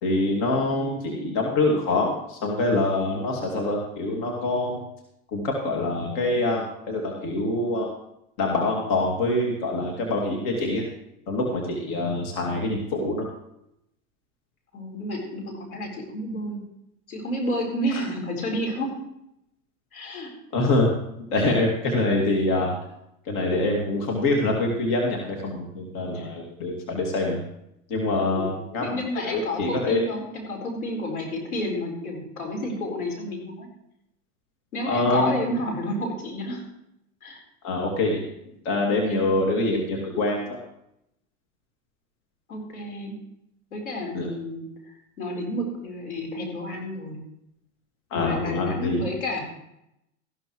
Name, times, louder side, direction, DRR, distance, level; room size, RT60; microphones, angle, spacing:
voice 1, 0.0-4.8 5.3-7.9 8.4-10.8 11.3-13.3 17.9-18.0 20.5-20.9 21.3-22.7 23.2-27.4 27.9-28.9 29.2-30.0 34.9-35.5 37.6-38.2 38.6-40.4 44.1-44.3 48.1-49.0, left 2 dB, 50° left, 0 dB, 2.6 m, -25 dB
voice 2, 14.7-16.6 17.1-18.9 19.9-20.3 26.1-26.3 28.2-33.7 34.7-36.6 37.2-37.4 39.0-39.5 42.5-43.2 43.7-47.2 48.1-49.4, left 1 dB, 85° left, 0 dB, 4.4 m, -31 dB
14.5 x 12.0 x 3.2 m, 0.81 s
hypercardioid pair, 100°, 42 cm